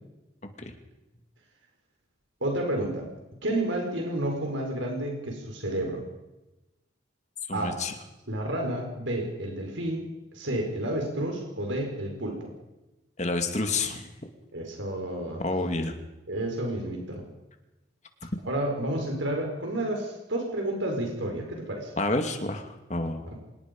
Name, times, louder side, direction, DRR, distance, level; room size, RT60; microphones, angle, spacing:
voice 1, 2.4-3.1 3.4-6.0 7.5-7.8 8.3-12.5 14.5-15.4 16.3-17.3 18.5-21.9 23.3-23.4, right 1 dB, 80° right, 2 dB, 5.1 m, -30 dB
voice 2, 7.5-7.9 13.2-14.1 15.4-15.9 22.0-23.2, left 2 dB, 35° left, 6 dB, 2.4 m, -29 dB
25.5 x 20.0 x 5.4 m, 0.99 s
head